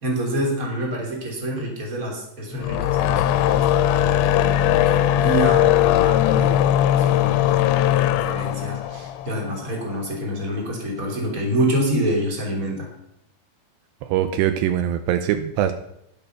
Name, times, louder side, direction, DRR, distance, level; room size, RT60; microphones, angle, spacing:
voice 1, 0.0-4.2 4.7-12.9, right 1 dB, 20° right, 0 dB, 2.9 m, -27 dB
sound 1, 2.5-9.9, left 11 dB, 90° left, 2.9 m, -19 dB
voice 2, 14.1-15.7, right 11 dB, 80° right, 9 dB, 2.8 m, -22 dB
11.0 x 11.0 x 5.9 m, 0.76 s
omnidirectional pair, 5.0 m